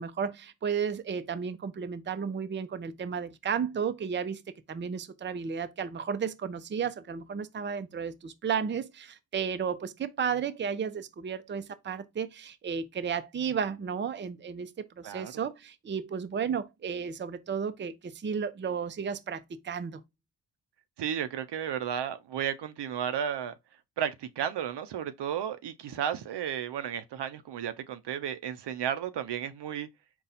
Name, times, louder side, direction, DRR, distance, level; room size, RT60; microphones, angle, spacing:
voice 1, 0.0-20.0, right 6 dB, 30° right, 0.5 m, -33 dB
voice 2, 21.0-23.5 24.0-29.9, right 9 dB, 75° right, 0.6 m, -33 dB
4.1 x 2.3 x 3.9 m
cardioid pair, 50°, 41 cm